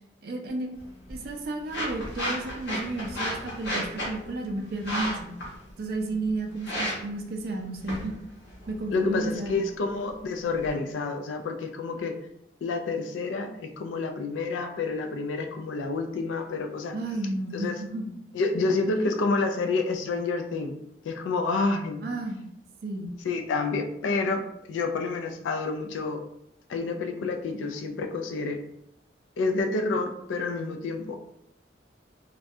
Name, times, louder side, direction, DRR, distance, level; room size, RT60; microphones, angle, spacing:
voice 1, 0.2-0.7 1.1-5.3 5.8-8.2 8.7-9.6 16.9-18.1 19.1-19.2 22.0-22.4 22.8-23.1, right 2 dB, 55° right, 3 dB, 0.3 m, -32 dB
sound 1, 0.7-10.7, equal, 70° left, 0.9 m, -36 dB
voice 2, 8.9-12.2 12.6-17.0 17.5-17.8 18.3-20.8 21.0-22.0 23.2-24.4 24.7-26.2 26.7-28.6 29.4-31.2, left 3 dB, 85° left, 5 dB, 0.3 m, -28 dB
2.3 x 2.1 x 2.6 m, 0.79 s
head